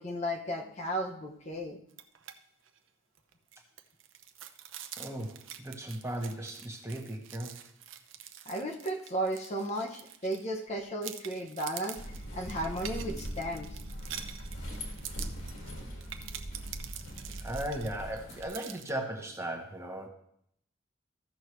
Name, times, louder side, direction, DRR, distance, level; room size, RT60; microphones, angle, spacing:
voice 1, 0.0-1.8 8.5-12.0 12.3-13.7, right 1 dB, 30° left, 1 dB, 0.8 m, -34 dB
sound 1, 1.9-2.4 2.7-2.8 3.2-10.6 11.0-18.9, right 10 dB, 65° right, 0.7 m, -46 dB
voice 2, 5.0-7.5 17.4-20.1, right 1 dB, 15° right, 2 dB, 1.1 m, -37 dB
sound 2, 12.0-18.5, equal, 65° left, 2.2 m, -41 dB
15.0 x 6.3 x 3.2 m, 0.71 s
head